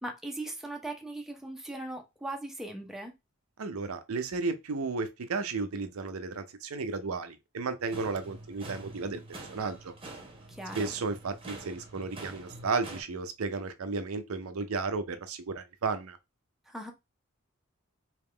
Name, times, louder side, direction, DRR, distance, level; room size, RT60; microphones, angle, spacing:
voice 1, 0.0-3.1 10.5-10.9 16.7-16.9, right 1 dB, ahead, 0.6 m, -39 dB
voice 2, 3.6-9.2 9.5-9.9 10.7-16.2, right 4 dB, 85° right, 0.6 m, -33 dB
sound 1, 7.8-13.0, right 2 dB, 25° right, 0.9 m, -46 dB
3.5 x 2.9 x 3.3 m
head